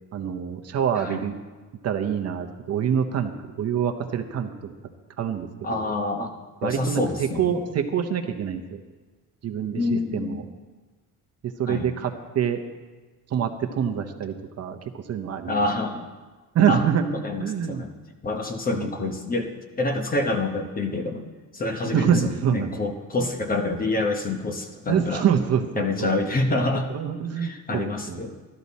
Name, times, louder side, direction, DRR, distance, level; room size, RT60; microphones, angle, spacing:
voice 1, 0.1-1.3 1.8-3.3 3.6-4.7 5.2-5.9 6.6-8.8 9.4-10.4 11.4-12.6 13.3-15.6 16.5-17.0 17.4-17.8 18.7-18.9 21.9-22.8 24.9-26.3 26.9-28.4, right 8 dB, 45° right, 6 dB, 0.8 m, -26 dB
voice 2, 5.6-6.3 6.6-7.6 9.7-10.4 11.7-11.9 15.5-16.1 16.7-16.8 17.2-17.9 18.2-25.3 25.8-26.9 27.4-28.4, left 2 dB, 25° left, 4 dB, 0.9 m, -27 dB
14.0 x 11.5 x 4.1 m, 1.3 s
cardioid pair, 170°, 36 cm